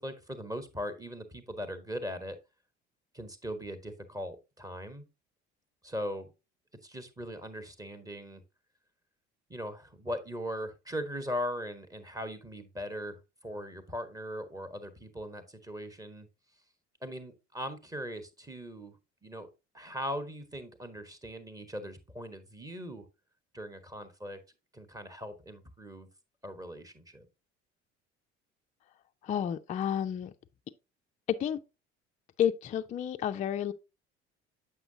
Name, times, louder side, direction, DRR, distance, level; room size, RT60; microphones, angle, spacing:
voice 1, 0.0-2.4 3.1-5.0 5.8-6.3 6.8-8.4 9.5-16.3 17.0-19.0 19.2-19.5 19.7-23.0 23.5-24.4 24.7-26.1 26.4-27.3, equal, 10° right, 1.1 m, -39 dB
voice 2, 29.2-30.3 31.4-31.6 32.4-33.7, left 9 dB, 20° left, 0.4 m, -30 dB
7.9 x 5.7 x 2.7 m
figure-of-eight pair, 55°, 35 cm